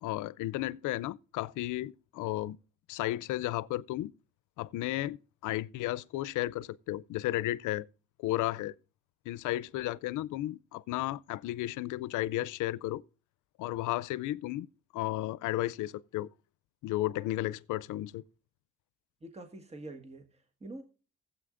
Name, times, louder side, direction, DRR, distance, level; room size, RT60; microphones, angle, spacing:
voice 1, 0.0-2.6 2.9-4.1 4.6-7.9 8.2-8.7 9.3-13.0 13.6-14.7 14.9-16.3 16.8-18.2, left 16 dB, 85° left, 0.5 m, -33 dB
voice 2, 19.2-20.8, right 2 dB, 20° right, 1.7 m, -46 dB
16.0 x 8.2 x 2.5 m
cardioid pair, 90°, 30 cm